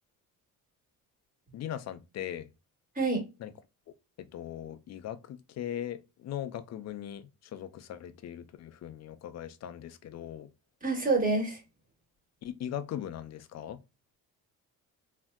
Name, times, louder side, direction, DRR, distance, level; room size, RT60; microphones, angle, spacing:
voice 1, 1.5-2.5 3.4-3.5 3.9-10.5 12.4-13.8, left 10 dB, 45° left, 0.5 m, -39 dB
voice 2, 10.8-11.6, right 3 dB, 20° right, 1.5 m, -27 dB
3.3 x 2.6 x 2.3 m
cardioid pair, 100°, 36 cm